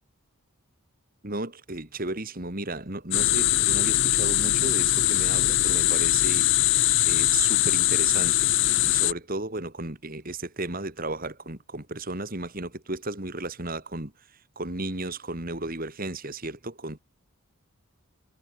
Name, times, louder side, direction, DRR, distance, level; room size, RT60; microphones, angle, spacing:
voice 1, 1.2-6.7 7.1-17.0, right 2 dB, 40° right, 3.1 m, -34 dB
sound 1, 3.1-9.1, left 15 dB, 55° left, 0.9 m, -22 dB
head